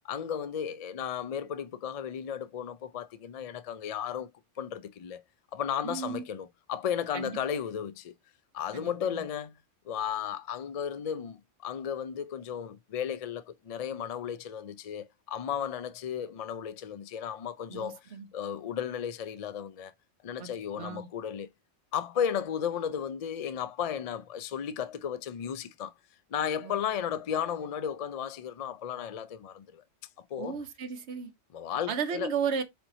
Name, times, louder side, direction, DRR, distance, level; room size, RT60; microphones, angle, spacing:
voice 1, 0.0-4.3 4.6-5.2 5.5-8.1 8.5-9.6 9.9-18.0 18.3-19.9 20.2-21.5 21.9-25.9 26.3-29.8 30.3-30.6 31.5-32.3, left 8 dB, 70° left, 0.3 m, -34 dB
voice 2, 5.8-6.3 7.1-7.4 8.7-9.2 17.7-18.3 20.4-20.5 20.8-21.1 26.6-26.7 30.4-31.3 31.9-32.6, right 6 dB, 65° right, 1.1 m, -34 dB
4.4 x 4.3 x 2.6 m
omnidirectional pair, 1.3 m